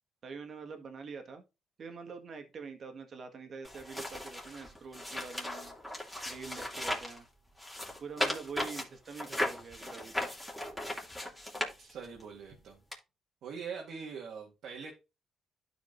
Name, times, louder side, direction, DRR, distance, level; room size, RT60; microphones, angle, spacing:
voice 1, 0.2-1.4 1.8-5.8 6.3-7.3 8.0-10.3, right 5 dB, 50° right, 6 dB, 1.7 m, -45 dB
sound 1, 3.6-7.2 7.6-12.2 12.9-13.0, left 1 dB, 5° left, 2.7 m, -37 dB
voice 2, 11.8-12.8 13.4-14.9, right 6 dB, 75° right, -1 dB, 2.0 m, -43 dB
12.0 x 5.1 x 2.7 m, 0.26 s
cardioid pair, 90°, 0 cm